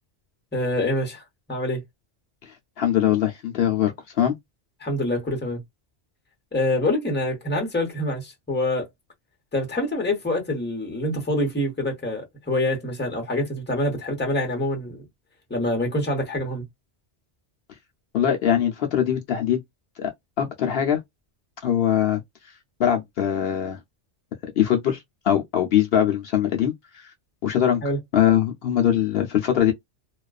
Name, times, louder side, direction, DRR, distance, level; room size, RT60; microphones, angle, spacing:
voice 1, 0.5-1.2 1.5-1.8 4.8-5.6 6.5-8.9 9.5-15.0 15.5-16.6 27.8-28.0, left 1 dB, 10° left, 0.8 m, -25 dB
voice 2, 2.5-4.3 18.1-19.6 20.0-20.1 20.4-21.0 21.6-22.2 22.8-23.8 24.6-27.1 27.4-27.8 28.1-29.7, left 10 dB, 65° left, 0.7 m, -22 dB
2.4 x 2.2 x 2.3 m
omnidirectional pair, 1.2 m